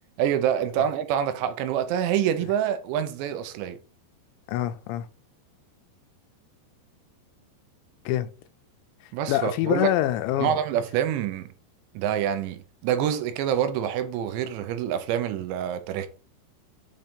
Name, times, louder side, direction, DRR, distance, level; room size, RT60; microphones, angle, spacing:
voice 1, 0.2-3.8 9.1-9.9 10.4-11.5 11.9-16.1, right 9 dB, 85° right, 3.0 m, -26 dB
voice 2, 4.5-5.1 8.1-8.3 9.3-10.5, left 13 dB, 85° left, 2.8 m, -25 dB
7.3 x 2.7 x 5.1 m
omnidirectional pair, 5.1 m